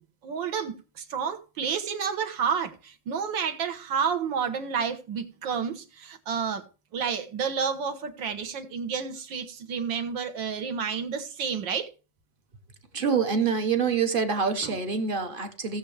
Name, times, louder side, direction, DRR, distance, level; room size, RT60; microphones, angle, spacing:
voice 1, 0.2-6.6 6.9-11.9 14.6-14.8, right 6 dB, 65° right, 1.9 m, -30 dB
voice 2, 12.9-15.8, right 6 dB, 35° right, 1.0 m, -26 dB
16.5 x 7.3 x 3.3 m
omnidirectional pair, 2.2 m